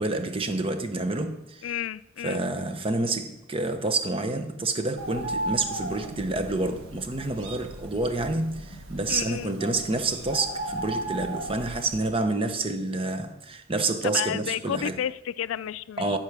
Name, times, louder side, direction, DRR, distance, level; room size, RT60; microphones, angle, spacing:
voice 1, 0.0-1.6 2.2-14.9 16.0-16.2, right 2 dB, 30° right, 0.8 m, -28 dB
voice 2, 1.6-2.4 9.1-9.5 14.0-16.2, left 10 dB, 80° left, 0.3 m, -31 dB
Bird, 5.0-12.1, right 1 dB, 75° right, 1.2 m, -36 dB
12.0 x 4.4 x 6.0 m
head